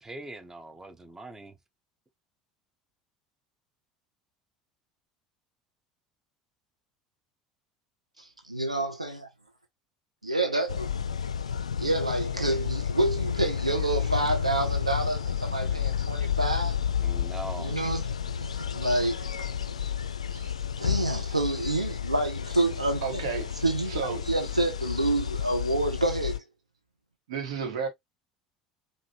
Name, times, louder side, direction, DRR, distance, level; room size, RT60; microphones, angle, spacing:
voice 1, 0.0-1.6 17.0-17.8, right 1 dB, 15° right, 0.7 m, -41 dB
voice 2, 8.2-9.3 10.2-10.9 11.8-16.8 17.6-18.1 18.4-19.5 19.8-19.9 20.8-23.2 23.6-23.9 24.2-26.4, right 2 dB, 90° right, 0.8 m, -28 dB
sound 1, 10.7-26.4, left 8 dB, 80° left, 0.3 m, -31 dB
voice 3, 23.0-23.5 23.9-24.2 27.3-27.9, right 5 dB, 70° right, 1.3 m, -32 dB
5.0 x 2.5 x 2.9 m
figure-of-eight pair, 70°, 3 cm